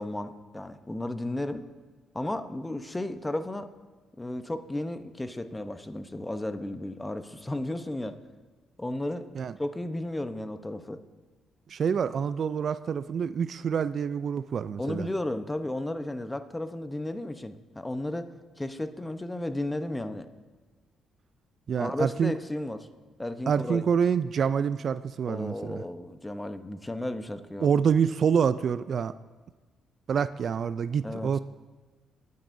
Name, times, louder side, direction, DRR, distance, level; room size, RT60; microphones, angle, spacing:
voice 1, 0.0-1.7 2.1-3.7 4.2-8.2 8.8-9.3 9.6-11.0 14.8-20.3 21.8-22.9 23.2-23.8 25.3-27.7 31.0-31.3, left 1 dB, 15° left, 9 dB, 0.8 m, -34 dB
voice 2, 11.7-15.1 21.7-22.3 23.5-25.8 27.6-29.1 30.1-31.4, right 7 dB, 55° right, 14 dB, 0.3 m, -26 dB
21.5 x 9.4 x 2.7 m, 1.3 s
cardioid pair, 75°, 0 cm